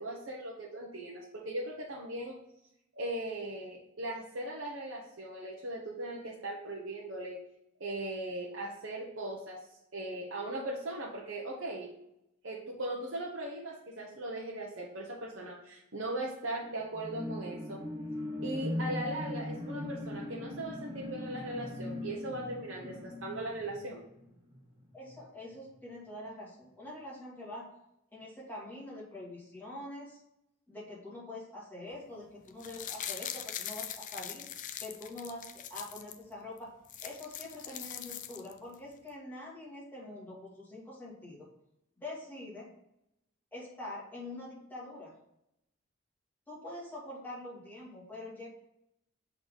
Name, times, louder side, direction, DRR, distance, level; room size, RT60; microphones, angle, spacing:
voice 1, 0.0-2.4 3.0-7.4 7.8-9.6 9.9-11.9 12.4-17.8 18.4-24.0, right 1 dB, 70° right, -4 dB, 1.0 m, -39 dB
sound 1, 16.9-24.7 25.2-25.3, left 1 dB, 15° right, 1.1 m, -39 dB
voice 2, 24.9-27.7 28.1-30.2 30.7-34.5 34.8-36.7 37.0-41.5 42.0-42.7 43.5-45.1 46.5-48.5, left 1 dB, 10° left, -7 dB, 2.2 m, -45 dB
sound 2, 32.5-36.2 36.6-36.7 36.8-38.7 39.1-39.2, left 10 dB, 40° left, 0.4 m, -42 dB
6.5 x 3.9 x 3.7 m, 0.83 s
head